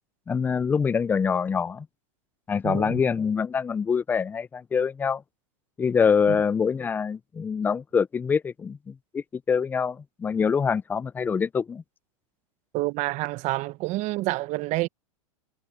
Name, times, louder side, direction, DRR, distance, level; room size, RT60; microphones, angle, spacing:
voice 1, 0.3-1.9 2.5-5.2 5.8-11.8, left 6 dB, 10° left, 0.3 m, -25 dB
voice 2, 2.6-3.0 6.3-6.4 12.7-14.9, right 19 dB, 40° right, 1.0 m, -28 dB
hypercardioid pair, 130°, 18 cm